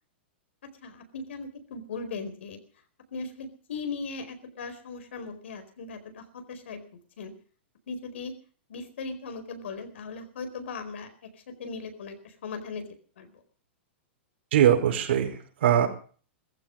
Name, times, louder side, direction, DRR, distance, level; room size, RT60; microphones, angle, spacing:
voice 1, 0.6-2.6 3.1-6.8 7.2-7.3 7.9-8.3 8.7-11.1 11.5-12.9 13.2-13.3, left 4 dB, 80° left, 8 dB, 4.5 m, -38 dB
voice 2, 14.5-15.9, right 10 dB, 70° right, 4 dB, 4.8 m, -22 dB
18.0 x 15.0 x 5.2 m, 0.43 s
supercardioid pair, 165°, 6 cm